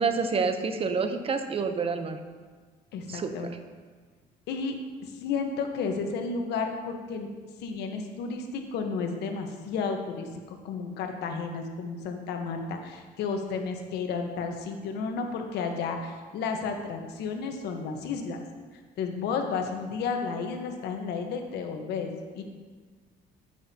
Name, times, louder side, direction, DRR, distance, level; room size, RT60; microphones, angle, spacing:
voice 1, 0.0-2.2 3.1-3.6, right 5 dB, 35° right, 8 dB, 0.7 m, -28 dB
voice 2, 2.9-3.6 4.5-4.7 5.0-7.3 7.6-18.4 19.0-22.4, left 5 dB, 80° left, 4 dB, 1.1 m, -32 dB
9.6 x 9.1 x 2.8 m, 1.4 s
cardioid pair, 110°, 17 cm